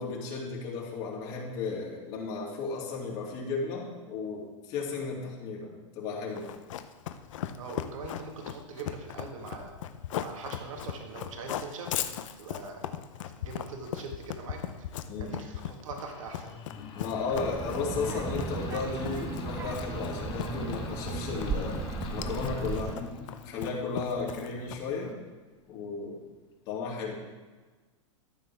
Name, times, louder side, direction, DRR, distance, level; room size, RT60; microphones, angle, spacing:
voice 1, 0.0-6.5 15.1-15.3 17.0-21.8 22.1-23.0 23.4-25.1 25.7-26.2 26.7-27.2, left 4 dB, 50° left, -3 dB, 2.7 m, -34 dB
Run, 6.4-25.0, left 10 dB, 75° left, 0.7 m, -38 dB
voice 2, 7.6-9.7 10.2-11.9 12.4-12.9 13.3-14.6 15.2-16.7, right 4 dB, 80° right, 2 dB, 1.6 m, -42 dB
sound 1, 15.9-25.3, left 5 dB, 30° left, 1.3 m, -42 dB
Child speech kid speaking, 17.3-22.9, right 6 dB, 15° right, 0.4 m, -36 dB
13.5 x 6.5 x 3.5 m, 1.3 s
hypercardioid pair, 130°, 17 cm